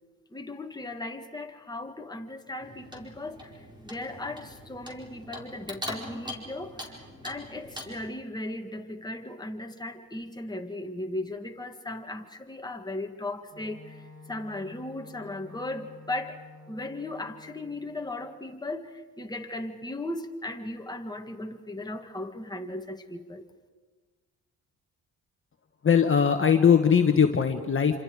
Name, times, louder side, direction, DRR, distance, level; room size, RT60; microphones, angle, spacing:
voice 1, 0.3-7.0 7.2-16.4 16.7-23.5, left 2 dB, 10° left, 4 dB, 1.9 m, -37 dB
Clock, 2.6-8.1, left 1 dB, 15° right, 4.6 m, -42 dB
Wind instrument woodwind instrument, 13.5-18.2, left 3 dB, 65° right, 4.7 m, -50 dB
voice 2, 25.8-28.0, left 7 dB, 35° left, 5 dB, 1.4 m, -20 dB
27.0 x 26.5 x 4.9 m, 1.4 s
cardioid pair, 75°, 34 cm